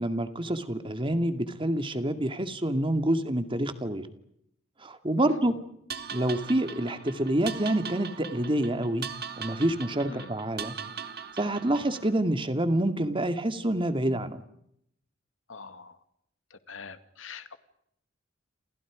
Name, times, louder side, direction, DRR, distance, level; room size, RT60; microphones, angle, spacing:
voice 1, 0.0-4.1 4.8-5.6 6.1-9.1 9.4-10.7 11.4-14.4, right 1 dB, 25° right, 8 dB, 2.2 m, -27 dB
sound 1, 5.9-12.1, right 7 dB, 50° right, 1.7 m, -40 dB
voice 2, 15.5-15.9 16.7-17.6, left 4 dB, 70° left, 10 dB, 2.1 m, -43 dB
29.5 x 28.0 x 5.1 m, 0.74 s
head